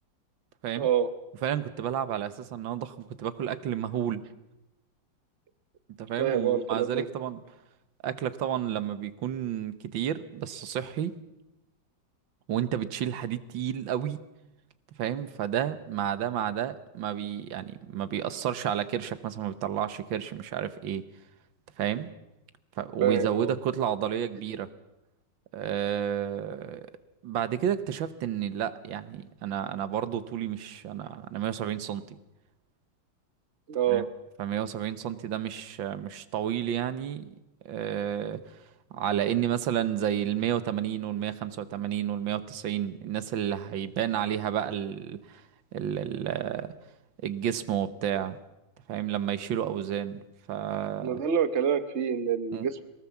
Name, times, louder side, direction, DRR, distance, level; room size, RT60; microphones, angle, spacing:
voice 1, 0.7-1.1 6.2-7.1 23.0-23.5 33.7-34.1 51.0-52.8, right 8 dB, 40° right, 12 dB, 1.3 m, -26 dB
voice 2, 1.4-4.2 6.0-7.4 8.0-11.1 12.5-14.2 15.0-21.0 21.8-22.1 22.8-24.7 25.5-26.9 27.2-32.0 33.9-34.1 34.4-37.3 37.7-38.4 38.9-45.4 45.7-46.7 47.2-48.4 48.9-50.2 50.5-51.2 52.5-52.7, right 10 dB, 85° right, 14 dB, 1.8 m, -31 dB
22.5 x 19.0 x 7.2 m, 0.95 s
omnidirectional pair, 2.0 m